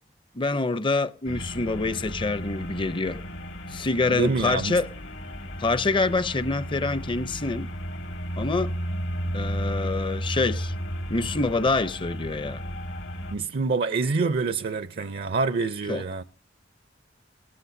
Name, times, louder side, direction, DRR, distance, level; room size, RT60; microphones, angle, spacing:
voice 1, 0.3-3.2 3.7-4.9 5.6-7.7 8.4-8.7 9.3-10.7 11.1-12.6 15.9-16.0, left 3 dB, 25° left, 0.6 m, -26 dB
sound 1, 1.2-13.3, equal, 70° left, 1.8 m, -33 dB
voice 2, 4.1-4.8 13.3-16.2, right 4 dB, 55° right, 0.5 m, -26 dB
18.0 x 13.5 x 2.6 m
head